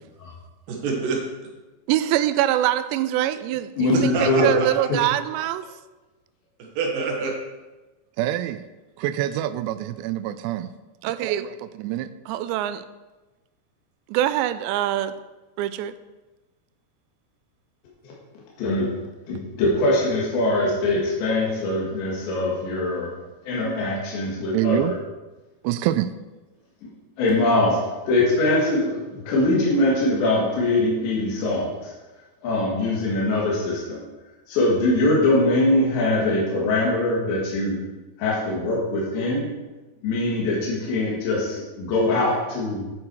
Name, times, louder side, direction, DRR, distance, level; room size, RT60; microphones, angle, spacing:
voice 1, 0.7-1.5 3.9-4.9 6.6-7.3, right 4 dB, 60° right, 0 dB, 2.7 m, -27 dB
voice 2, 1.9-5.6 8.2-8.6 9.0-10.7 11.0-12.8 14.1-15.1 15.6-15.9 23.6-23.8 24.5-24.9 25.6-26.1, right 13 dB, 85° right, 13 dB, 2.7 m, -24 dB
voice 3, 3.8-4.5 4.9-5.0 18.6-18.9 19.3-23.1 23.4-25.0 26.8-26.9 27.2-27.8 28.1-31.9 32.4-34.0 34.5-37.8 38.2-39.5 40.0-42.8, left 2 dB, 80° left, -5 dB, 4.2 m, -22 dB
10.0 x 7.5 x 4.5 m, 1.1 s
omnidirectional pair, 5.1 m